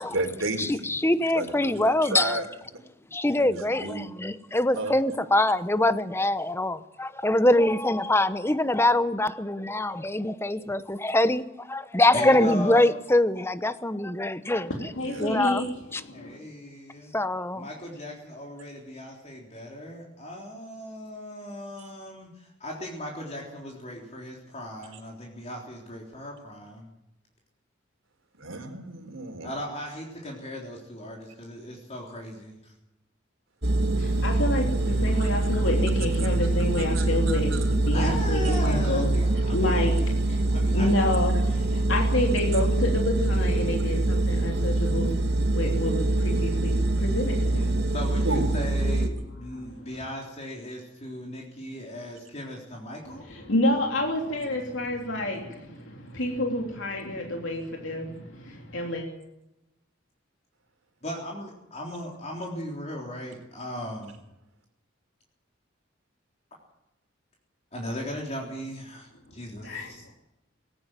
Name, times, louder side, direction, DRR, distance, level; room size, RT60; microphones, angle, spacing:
voice 1, 0.0-1.0 1.3-2.5 3.3-4.1 4.7-4.9 15.0-15.3 21.8-21.9 28.4-29.5 35.2-35.3 36.8-37.6 48.2-48.6, right 2 dB, 80° right, 6 dB, 4.0 m, -33 dB
voice 2, 0.6-2.4 3.1-14.7 15.2-15.6 15.9-16.0 17.1-17.7, left 1 dB, 10° left, 13 dB, 0.9 m, -24 dB
voice 3, 12.1-12.8 16.1-17.1 17.5-26.9 29.4-32.7 37.9-39.7 40.2-40.9 47.9-53.2 61.0-64.2 67.7-70.0, left 1 dB, 35° left, -1 dB, 3.7 m, -38 dB
voice 4, 14.5-16.4 34.0-47.9 49.5-50.0 53.0-59.0 69.6-70.1, left 1 dB, 70° left, 1 dB, 3.2 m, -29 dB
sound 1, 33.6-49.1, right 2 dB, 55° right, 2.3 m, -24 dB
19.0 x 18.0 x 7.6 m, 0.91 s
head